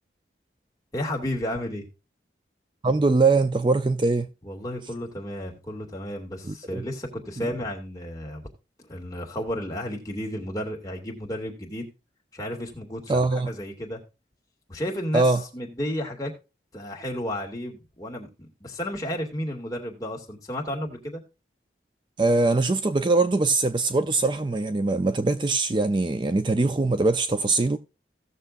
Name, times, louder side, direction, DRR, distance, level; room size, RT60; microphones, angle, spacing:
voice 1, 0.9-1.9 4.4-8.5 8.8-11.9 12.3-14.0 14.7-16.3 16.7-21.2, equal, 20° left, 2.3 m, -32 dB
voice 2, 2.8-4.3 6.4-6.8 13.1-13.5 15.1-15.4 22.2-27.8, right 3 dB, 25° right, 0.5 m, -22 dB
17.0 x 6.8 x 2.6 m
head